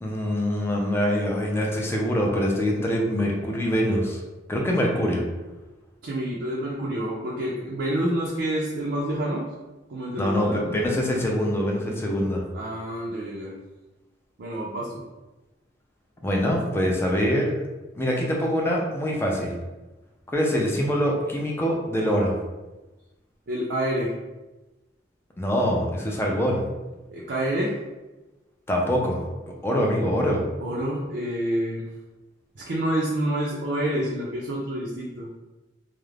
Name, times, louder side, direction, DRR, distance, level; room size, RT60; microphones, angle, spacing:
voice 1, 0.0-4.2 4.5-5.2 10.2-12.4 16.2-17.5 18.0-19.6 20.3-22.4 25.4-26.7 28.7-29.2 29.6-30.4, equal, 15° left, -1 dB, 0.4 m, -24 dB
voice 2, 6.0-9.5 9.9-10.7 12.5-13.5 14.4-15.0 23.5-24.1 27.1-27.7 30.6-31.8 32.6-35.3, right 1 dB, 65° right, -4 dB, 0.4 m, -28 dB
2.4 x 2.0 x 3.2 m, 1.1 s
head